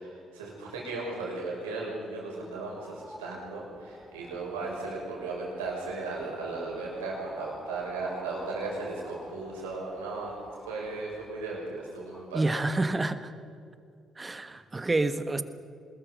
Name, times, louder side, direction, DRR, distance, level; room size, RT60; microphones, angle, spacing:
voice 1, 0.0-10.3 10.7-12.5, right 3 dB, 80° right, -3 dB, 6.1 m, -36 dB
sound 1, 2.6-12.3, left 1 dB, 5° left, 3.6 m, -48 dB
voice 2, 12.3-13.3 14.2-15.4, right 2 dB, 25° right, 11 dB, 1.4 m, -28 dB
25.0 x 20.5 x 5.4 m, 2.4 s
hypercardioid pair, 45°, 0 cm